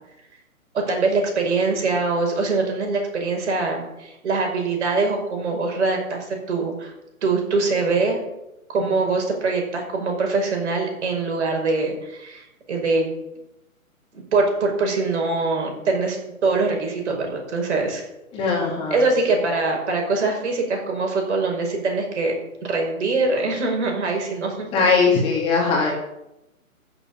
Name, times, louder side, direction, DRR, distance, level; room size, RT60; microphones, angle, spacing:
voice 1, 0.7-6.9 7.2-8.2 8.7-13.0 14.1-16.2 16.4-18.0 18.9-22.3 22.6-24.7, right 3 dB, 55° right, 2 dB, 5.8 m, -23 dB
voice 2, 18.3-19.0 24.7-25.9, left 4 dB, 10° left, -3 dB, 2.2 m, -20 dB
14.5 x 7.3 x 7.5 m, 0.90 s
hypercardioid pair, 160°, 43 cm